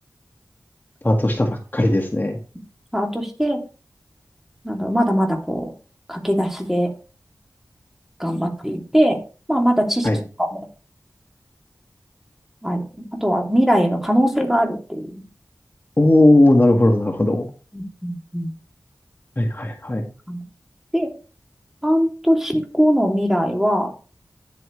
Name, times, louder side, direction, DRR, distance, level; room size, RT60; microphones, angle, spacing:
voice 1, 1.0-2.4 10.0-10.2 16.0-17.5 19.4-20.1, left 1 dB, 30° left, 2 dB, 1.8 m, -17 dB
voice 2, 2.9-3.6 4.6-5.7 6.1-6.9 8.2-9.2 9.5-10.7 12.6-15.2 17.7-18.5 20.3-20.4 20.9-21.1 21.8-23.9, equal, 5° right, 2 dB, 3.0 m, -21 dB
9.9 x 9.0 x 3.3 m, 0.35 s
wide cardioid pair, 45°, 6 cm